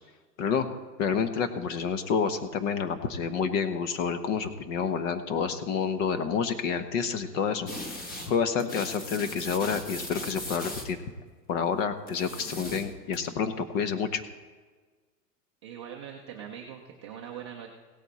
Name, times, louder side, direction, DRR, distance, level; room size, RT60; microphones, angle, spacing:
voice 1, 1.0-7.7 8.3-11.0 11.5-14.2, left 6 dB, 50° left, 10 dB, 1.2 m, -29 dB
sound 1, 7.7-8.3 8.6-10.9 12.1-13.2, left 1 dB, 20° left, 1.2 m, -39 dB
voice 2, 15.6-17.7, right 8 dB, 20° right, -1 dB, 0.3 m, -42 dB
16.5 x 8.9 x 4.2 m, 1.4 s
supercardioid pair, 140°, 50 cm